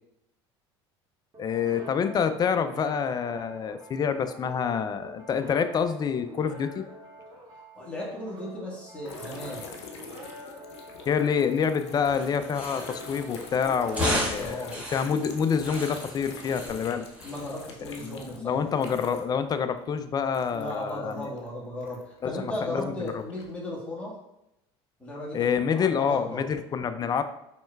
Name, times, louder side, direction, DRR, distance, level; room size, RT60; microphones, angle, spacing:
sound 1, 1.3-16.7, equal, 30° right, 1.3 m, -46 dB
voice 1, 1.4-6.8 11.1-17.1 17.8-21.3 22.2-22.9 23.1-23.2 25.3-27.2, left 6 dB, 30° left, 10 dB, 0.4 m, -27 dB
voice 2, 7.6-9.7 14.4-14.8 17.2-18.6 20.5-24.2 25.0-26.4, left 1 dB, 10° left, -5 dB, 1.5 m, -36 dB
sound 2, 9.0-19.4 19.7-22.2 22.7-23.5, left 5 dB, 90° left, 0.5 m, -45 dB
sound 3, 12.0-19.6, equal, 10° right, 1.5 m, -36 dB
4.4 x 3.2 x 2.3 m, 0.86 s
hypercardioid pair, 75°, 14 cm